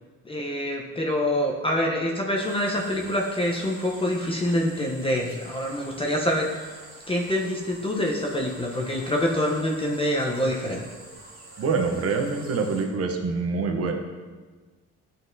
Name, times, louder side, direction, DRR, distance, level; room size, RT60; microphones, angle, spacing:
voice 1, 0.2-6.5 7.1-10.8, left 1 dB, 20° left, -1 dB, 0.7 m, -26 dB
sound 1, 2.3-12.8, right 2 dB, 30° right, 1.8 m, -46 dB
voice 2, 11.6-13.9, right 4 dB, 50° right, 3 dB, 0.8 m, -25 dB
9.2 x 4.0 x 2.6 m, 1.4 s
cardioid pair, 90°, 30 cm